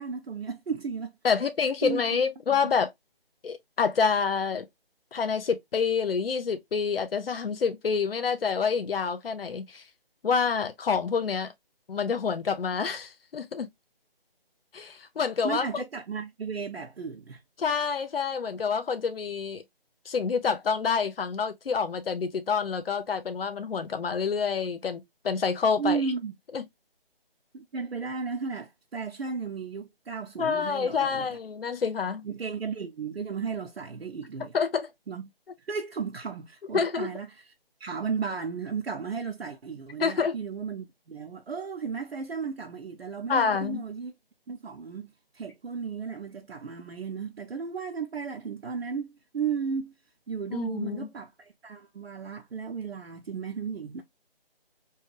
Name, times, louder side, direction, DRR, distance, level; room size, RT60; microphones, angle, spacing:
voice 1, 0.0-1.1 1.8-2.0 2.5-2.7 15.4-17.4 25.8-26.3 27.5-31.4 32.2-34.6 35.1-35.3 35.6-37.5 37.8-44.1 44.5-49.9 50.3-54.0, right 5 dB, 80° right, 0.7 m, -34 dB
voice 2, 1.2-2.9 3.4-4.7 5.1-9.8 10.2-11.5 11.9-13.7 14.7-15.6 17.6-19.6 20.1-26.0 26.5-26.6 30.4-32.2 34.5-34.9 36.7-37.1 40.0-40.4 43.3-43.8 50.5-51.1, left 6 dB, 70° left, 0.6 m, -27 dB
3.1 x 2.2 x 3.0 m
figure-of-eight pair, 155°, 30 cm